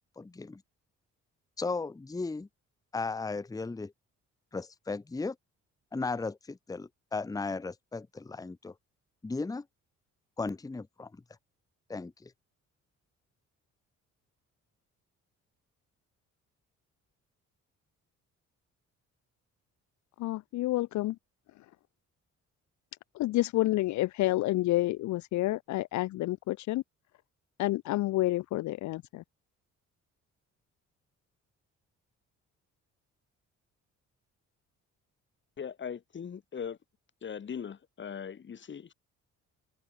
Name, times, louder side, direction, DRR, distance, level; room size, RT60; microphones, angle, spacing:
voice 1, 0.2-0.6 1.6-2.5 2.9-3.9 4.5-5.4 5.9-8.7 9.2-9.7 10.4-11.2 11.9-12.3, left 3 dB, 10° left, 0.7 m, -36 dB
voice 2, 20.2-21.2 23.2-26.8 27.6-29.2, left 17 dB, 70° left, 0.5 m, -29 dB
voice 3, 35.6-36.8 37.2-38.9, left 7 dB, 40° left, 1.3 m, -40 dB
open air
cardioid pair, 90°, 30 cm